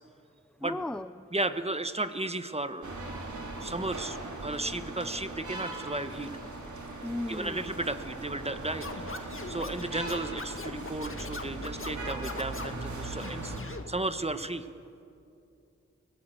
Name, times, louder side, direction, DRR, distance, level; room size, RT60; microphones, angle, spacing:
voice 1, 0.6-1.3 7.0-7.7, left 1 dB, 5° left, 13 dB, 0.5 m, -36 dB
voice 2, 1.3-3.0 3.6-6.3 7.3-14.7, right 2 dB, 20° right, 10 dB, 1.4 m, -34 dB
sound 1, 2.8-13.6, right 2 dB, 90° right, 3.7 m, -39 dB
Scratching (performance technique), 8.8-12.8 13.2-13.8, left 3 dB, 45° left, 2.0 m, -41 dB
25.5 x 18.0 x 8.2 m, 2.6 s
cardioid pair, 50°, 29 cm